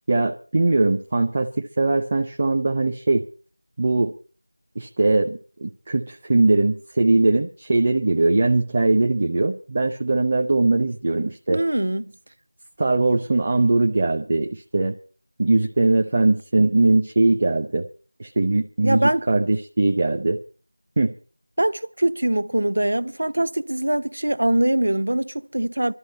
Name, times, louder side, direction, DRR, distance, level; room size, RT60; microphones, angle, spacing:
voice 1, 0.1-3.2 3.8-4.1 4.8-11.6 12.8-14.9 15.4-17.9 18.2-20.4 21.0-21.1, right 2 dB, 25° right, 0.7 m, -20 dB
voice 2, 11.5-12.1 18.8-19.3 21.6-25.9, right 1 dB, 65° right, 0.8 m, -22 dB
22.5 x 13.0 x 4.2 m
figure-of-eight pair, 175°, 0 cm